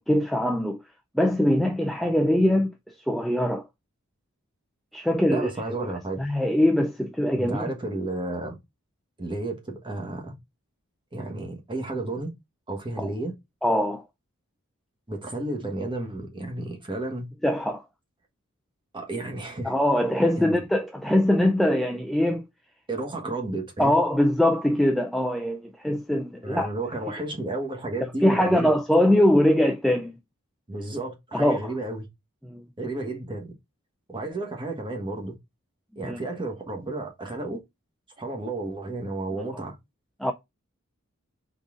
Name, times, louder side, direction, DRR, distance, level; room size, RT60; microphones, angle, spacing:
voice 1, 0.1-0.8 1.1-3.6 4.9-5.9 6.2-7.7 13.0-13.1 13.6-14.0 17.4-17.8 19.6-22.4 23.8-26.7 28.0-30.2 31.3-31.7 32.4-32.6 36.0-36.2 39.3-39.4 40.2-40.3, left 1 dB, ahead, 0.3 m, -22 dB
voice 2, 5.3-6.2 7.3-8.6 9.2-10.3 11.1-12.3 12.7-13.3 15.1-17.3 18.9-19.7 20.4-20.6 22.9-24.0 26.4-28.7 30.7-32.1 32.8-33.5 34.1-35.3 36.0-37.6 38.2-39.7, right 2 dB, 20° right, 1.2 m, -32 dB
4.0 x 3.7 x 3.6 m
head